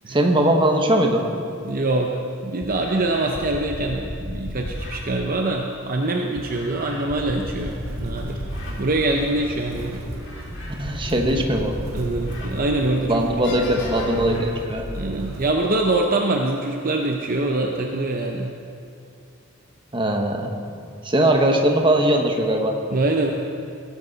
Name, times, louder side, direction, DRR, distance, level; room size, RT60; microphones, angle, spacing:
voice 1, 0.1-1.3 10.8-11.8 13.1-14.9 19.9-20.5 21.0-22.8, right 1 dB, 25° right, 3 dB, 1.1 m, -20 dB
voice 2, 1.6-8.4 8.8-10.0 11.2-11.4 11.9-13.5 14.9-18.5 22.9-23.3, right 2 dB, 40° right, 2 dB, 0.7 m, -24 dB
sound 1, 1.9-2.0 2.6-5.0 6.4-8.7 9.2-9.3 10.1-12.5 13.0-13.1 13.4-14.4, equal, 55° left, 2.5 m, -33 dB
Motor vehicle (road), 7.6-15.5, right 1 dB, 85° right, 1.6 m, -36 dB
18.0 x 11.0 x 4.1 m, 2.4 s
head